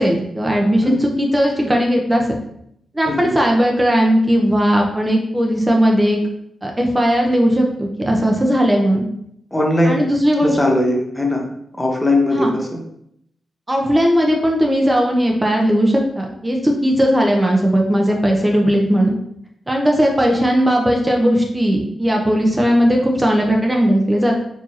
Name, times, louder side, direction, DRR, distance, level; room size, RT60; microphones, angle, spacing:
voice 1, 0.0-2.4 2.9-6.2 6.6-9.0 9.8-10.6 12.3-12.5 13.7-19.1 19.7-24.3, equal, 20° right, 0 dB, 0.7 m, -17 dB
voice 2, 9.5-10.1 10.4-11.4 11.8-12.8, left 1 dB, 15° left, 0 dB, 0.9 m, -19 dB
4.6 x 2.8 x 2.9 m, 0.74 s
cardioid pair, 55°, 0 cm